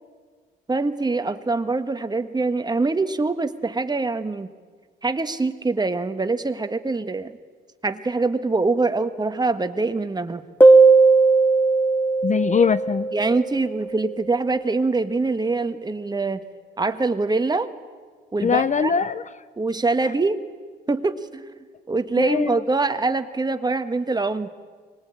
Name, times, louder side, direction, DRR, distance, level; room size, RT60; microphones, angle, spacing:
voice 1, 0.7-4.5 5.0-7.3 7.8-10.4 13.1-16.4 16.8-17.7 18.3-18.9 19.6-20.4 20.9-21.5 21.9-24.5, right 3 dB, 20° right, 9 dB, 1.4 m, -24 dB
sound 1, 10.6-13.9, right 3 dB, 10° left, 1.4 m, -17 dB
voice 2, 12.2-13.1 18.4-19.3 22.2-22.6, left 6 dB, 40° left, 16 dB, 0.7 m, -22 dB
24.0 x 20.5 x 8.9 m, 1.5 s
cardioid pair, 90°, 20 cm